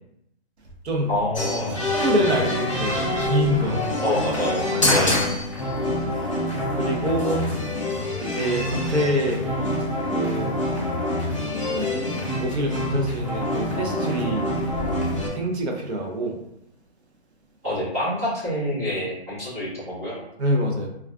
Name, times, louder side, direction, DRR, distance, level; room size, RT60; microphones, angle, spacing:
voice 1, 1.1-1.7 4.0-5.2 17.6-20.2, left 1 dB, 15° right, -13 dB, 0.8 m, -27 dB
sound 1, 1.3-15.3, left 1 dB, 30° left, 0.4 m, -26 dB
voice 2, 1.8-3.8 4.7-5.0 6.7-7.4 8.2-9.4 10.1-10.5 11.7-14.5 15.3-16.4 20.4-20.9, right 1 dB, 85° right, 1 dB, 0.7 m, -26 dB
2.3 x 2.3 x 2.3 m, 0.78 s
hypercardioid pair, 180°, 32 cm